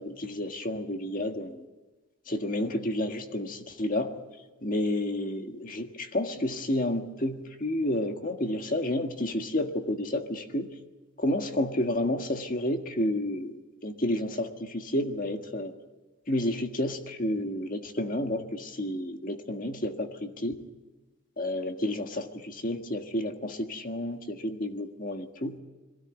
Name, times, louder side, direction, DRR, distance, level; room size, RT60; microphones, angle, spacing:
voice 1, 0.0-1.6 2.3-4.2 4.6-10.7 11.2-13.6 13.8-15.7 16.3-20.7 21.4-25.6, left 1 dB, 40° left, 5 dB, 1.7 m, -30 dB
22.0 x 16.5 x 9.3 m, 1.2 s
head